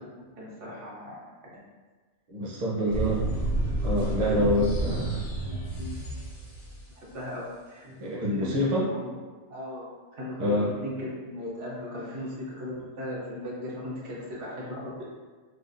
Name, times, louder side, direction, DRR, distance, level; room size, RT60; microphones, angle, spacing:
voice 1, 0.4-1.2 3.1-3.3 4.3-4.5 4.9-5.0 5.4-6.0 7.0-7.9 8.2-9.1 9.5-9.8 10.1-15.1, left 1 dB, 80° right, -5 dB, 1.1 m, -37 dB
voice 2, 2.3-3.3 3.8-5.2 7.9-8.9 10.4-10.7, equal, 40° right, -5 dB, 0.6 m, -26 dB
sound 1, 2.9-6.8, right 1 dB, 85° left, 1.1 m, -30 dB
3.3 x 2.3 x 2.5 m, 1.4 s
omnidirectional pair, 1.2 m